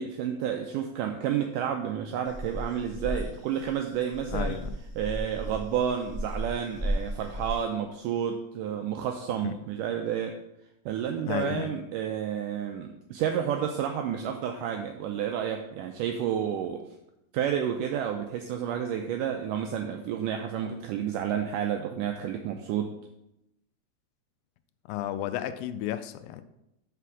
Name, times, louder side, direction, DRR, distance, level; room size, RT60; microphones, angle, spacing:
voice 1, 0.0-4.6 5.0-10.4 10.9-16.8 17.3-22.9, right 9 dB, 85° right, 4 dB, 1.8 m, -30 dB
sound 1, 2.3-7.5, right 1 dB, 5° right, 1.7 m, -34 dB
voice 2, 4.3-4.8 9.4-9.5 11.3-11.7 24.9-26.4, left 12 dB, 80° left, 11 dB, 2.1 m, -32 dB
5.9 x 5.8 x 6.1 m, 0.85 s
omnidirectional pair, 4.3 m